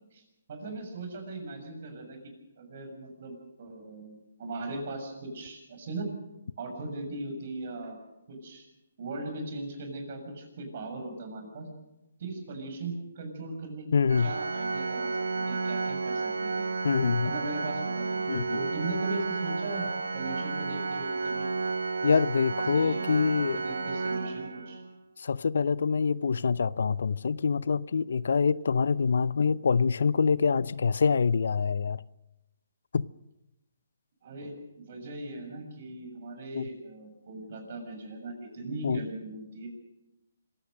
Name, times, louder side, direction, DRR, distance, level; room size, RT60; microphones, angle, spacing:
voice 1, 0.5-6.1 6.6-8.0 8.3-8.7 9.0-11.7 12.2-13.9 14.2-16.6 17.2-18.2 18.5-21.5 22.1-22.2 22.7-23.0 23.4-24.8 34.2-39.7, right 2 dB, 50° right, 6.8 m, -39 dB
voice 2, 13.9-14.3 16.8-17.3 18.3-18.6 22.0-23.6 25.2-32.0 32.9-33.1 36.5-36.7 38.8-39.0, left 5 dB, 70° left, 0.6 m, -25 dB
Organ, 14.1-24.9, right 4 dB, 85° right, 1.7 m, -32 dB
25.5 x 16.0 x 6.5 m
hypercardioid pair, 150°, 0 cm